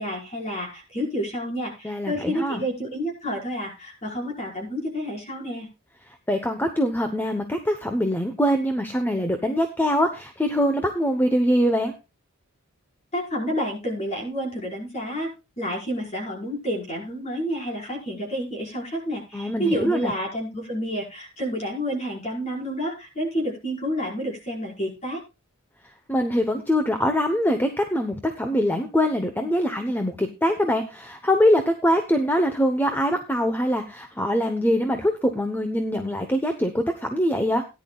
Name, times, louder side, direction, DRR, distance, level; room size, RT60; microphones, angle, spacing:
voice 1, 0.0-5.7 13.1-15.3 15.6-25.2, equal, 30° left, -1 dB, 5.1 m, -29 dB
voice 2, 1.8-2.6 6.1-11.9 19.3-20.1 26.1-37.7, equal, 10° left, 6 dB, 0.9 m, -23 dB
18.0 x 10.5 x 2.4 m, 0.27 s
head